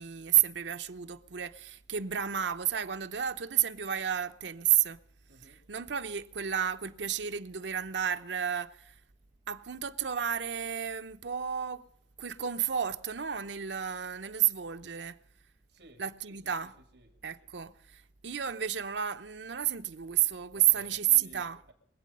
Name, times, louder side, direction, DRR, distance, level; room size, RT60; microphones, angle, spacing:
voice 1, 0.0-5.0 5.4-8.9 9.5-11.8 12.2-15.2 16.0-16.8 17.2-21.6, right 10 dB, 90° right, 0.7 m, -31 dB
voice 2, 5.3-5.6 15.7-16.0 16.3-17.1 20.5-21.7, right 1 dB, 65° right, 3.0 m, -56 dB
24.0 x 8.4 x 5.4 m
head